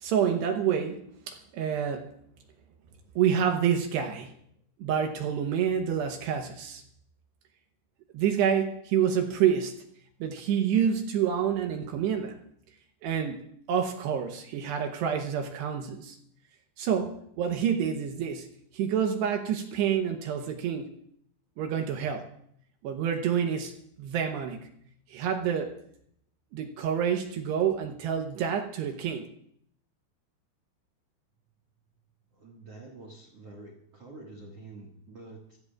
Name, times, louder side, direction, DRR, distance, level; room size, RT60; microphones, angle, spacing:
voice 1, 0.0-2.1 3.2-4.3 4.8-6.8 8.1-9.7 10.2-12.4 13.0-13.4 13.7-16.2 16.8-18.5 18.7-20.9 21.6-22.3 22.8-23.7 24.0-24.7 25.1-25.7 26.5-29.3, right 8 dB, 75° right, 5 dB, 2.7 m, -28 dB
voice 2, 32.3-35.6, right 2 dB, 50° right, 0 dB, 1.8 m, -47 dB
26.0 x 16.0 x 2.4 m, 0.68 s
omnidirectional pair, 5.7 m